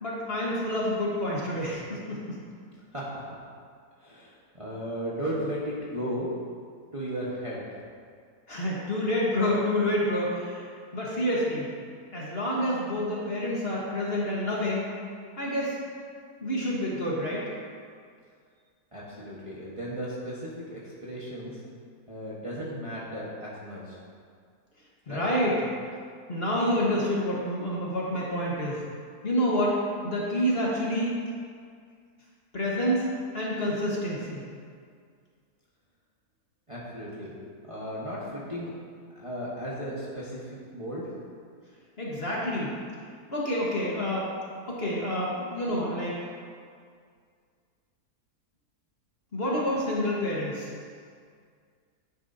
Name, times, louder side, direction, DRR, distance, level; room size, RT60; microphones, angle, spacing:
voice 1, 0.0-2.4 8.5-10.7 10.9-11.7 12.1-14.9 15.4-15.8 16.4-17.4 25.1-25.5 26.3-28.8 29.2-29.8 30.0-31.1 32.5-33.1 33.3-34.4 42.0-42.7 43.3-44.3 44.7-46.2 49.3-50.7, equal, 40° left, -5 dB, 1.5 m, -28 dB
voice 2, 2.9-3.4 4.0-6.3 6.9-7.6 18.9-21.6 22.1-24.0 25.1-25.2 36.7-37.3 37.7-38.7 39.1-41.0, equal, 20° right, -7 dB, 1.2 m, -35 dB
10.0 x 9.1 x 2.7 m, 2.1 s
omnidirectional pair, 1.7 m